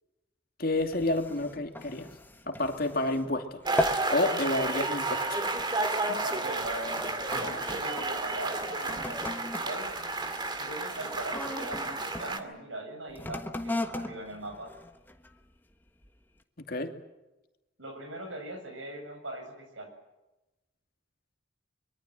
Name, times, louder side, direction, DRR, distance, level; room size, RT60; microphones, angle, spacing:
voice 1, 0.6-2.1 2.5-3.6 4.1-5.4 16.7-16.9, left 2 dB, 50° left, 5 dB, 2.6 m, -29 dB
sound 1, 0.7-3.3 3.6-4.2 4.5-4.8 5.5-5.8 6.5-12.3 13.1-15.4 16.0-16.1, left 1 dB, 10° left, 1.4 m, -38 dB
sound 2, 3.7-12.4, right 2 dB, 25° right, 2.1 m, -32 dB
voice 2, 6.1-9.2 9.6-9.9 10.6-14.7 17.8-19.9, right 1 dB, 75° right, 4 dB, 7.8 m, -40 dB
24.5 x 23.0 x 7.7 m, 1.0 s
head